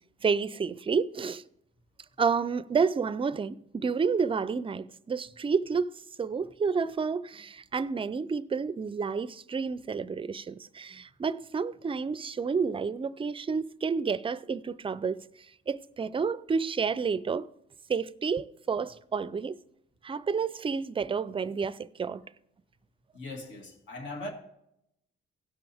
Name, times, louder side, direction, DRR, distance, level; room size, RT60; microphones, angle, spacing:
voice 1, 0.2-1.4 2.2-15.3 15.7-17.5 17.9-19.6 20.0-22.2, right 5 dB, 25° right, 0.4 m, -30 dB
voice 2, 23.1-24.3, left 2 dB, 70° left, 2.2 m, -39 dB
17.0 x 6.0 x 3.4 m
cardioid pair, 90°, 20 cm